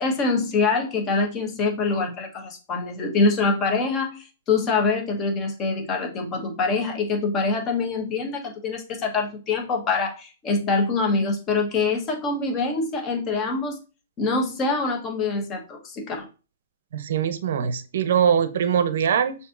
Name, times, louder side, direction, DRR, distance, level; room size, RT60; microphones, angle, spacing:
voice 1, 0.0-13.8 14.2-16.3, left 3 dB, 25° left, 2 dB, 1.1 m, -25 dB
voice 2, 16.9-19.4, right 8 dB, 65° right, 12 dB, 0.6 m, -22 dB
6.4 x 2.7 x 2.5 m, 0.34 s
hypercardioid pair, 140°, 0 cm